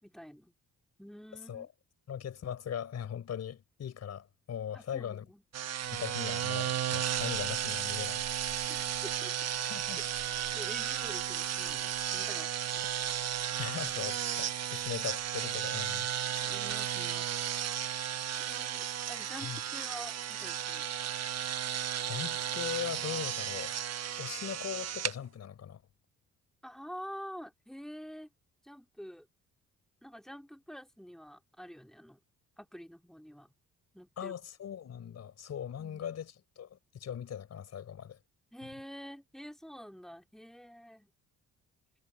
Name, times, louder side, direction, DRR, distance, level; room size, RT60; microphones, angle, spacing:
voice 1, 0.0-0.5 1.0-1.7 4.7-5.4 8.5-9.7 10.1-12.9 16.4-17.3 18.4-20.9 26.6-28.3 28.6-29.3 30.0-32.2 32.6-33.5 33.9-34.3 35.8-36.1 38.5-41.1, equal, ahead, 3.3 m, -48 dB
voice 2, 2.1-5.2 5.9-8.2 9.7-10.0 13.6-16.1 19.4-19.6 22.0-23.7 24.2-25.8 34.2-38.2, left 9 dB, 60° left, 4.5 m, -39 dB
sound 1, 5.5-25.1, right 10 dB, 60° right, 1.2 m, -34 dB
cardioid pair, 90°, 30 cm